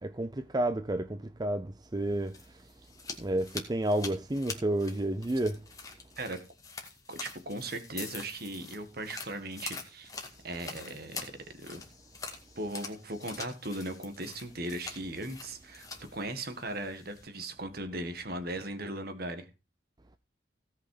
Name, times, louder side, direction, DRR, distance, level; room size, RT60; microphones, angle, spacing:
voice 1, 0.0-2.3 3.2-5.6, right 1 dB, 20° right, 0.5 m, -30 dB
sound 1, 2.0-17.2, left 4 dB, 20° left, 2.1 m, -45 dB
voice 2, 6.2-6.5 7.1-10.1 10.4-11.8 12.6-19.5, right 1 dB, 55° right, 1.8 m, -38 dB
17.0 x 5.8 x 4.9 m
head